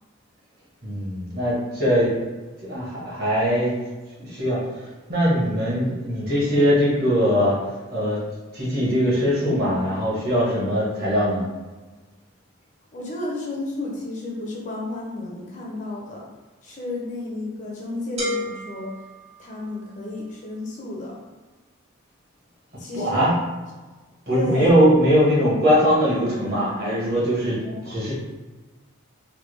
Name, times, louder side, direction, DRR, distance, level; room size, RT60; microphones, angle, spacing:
voice 1, 0.8-2.1 2.6-3.8 4.3-4.6 5.1-7.6 7.9-8.2 8.5-11.4 22.9-23.3 24.3-28.1, equal, 45° right, -6 dB, 1.1 m, -21 dB
voice 2, 12.9-16.2 16.6-18.9 19.4-21.2 22.8-23.3 24.3-24.7 27.6-28.0, left 2 dB, 35° left, -3 dB, 0.5 m, -32 dB
sound 1, 18.2-20.0, left 1 dB, 30° right, 0.5 m, -32 dB
3.3 x 2.2 x 3.1 m, 1.2 s
head